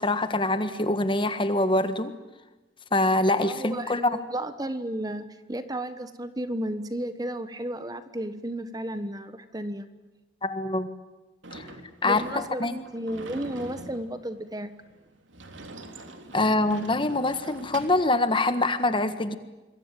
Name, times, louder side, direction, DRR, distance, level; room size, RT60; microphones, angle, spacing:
voice 1, 0.0-2.1 2.9-4.0 10.4-10.9 11.5-11.7 12.0-12.7 16.3-19.4, left 2 dB, 25° left, 10 dB, 1.6 m, -24 dB
voice 2, 3.4-9.8 12.0-14.7, right 1 dB, 20° right, 11 dB, 1.4 m, -33 dB
Sliding door / Slam, 11.4-18.1, right 2 dB, 85° right, 3.3 m, -44 dB
27.0 x 22.5 x 9.2 m, 1.1 s
head